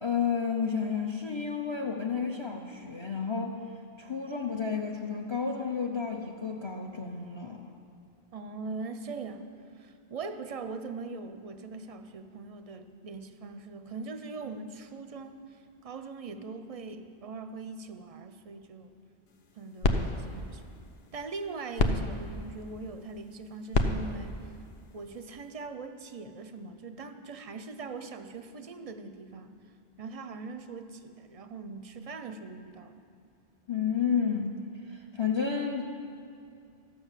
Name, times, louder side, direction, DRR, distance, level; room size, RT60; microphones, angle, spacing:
voice 1, 0.0-3.6 4.0-7.7 33.7-34.5 34.9-35.8, left 6 dB, 30° left, 2 dB, 0.6 m, -31 dB
voice 2, 8.3-9.5 9.8-18.9 19.6-20.6 21.1-24.5 24.9-29.6 30.0-33.0, right 4 dB, 45° right, 9 dB, 0.5 m, -41 dB
sound 1, 19.3-25.7, left 3 dB, 70° left, 1.0 m, -33 dB
13.5 x 6.2 x 7.3 m, 2.5 s
omnidirectional pair, 1.1 m